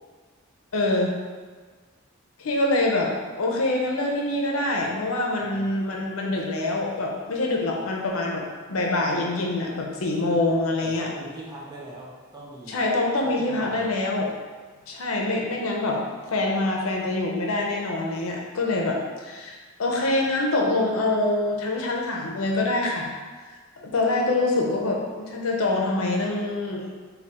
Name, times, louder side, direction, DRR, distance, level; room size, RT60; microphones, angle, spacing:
voice 1, 0.7-1.1 2.4-3.1 3.4-8.4 8.7-11.1 12.7-14.3 14.9-16.0 16.3-23.1 23.8-26.9, left 2 dB, 90° left, 0 dB, 0.6 m, -25 dB
voice 2, 10.8-12.8 13.2-13.9, right 1 dB, 20° right, -5 dB, 0.7 m, -40 dB
3.4 x 2.3 x 4.1 m, 1.4 s
head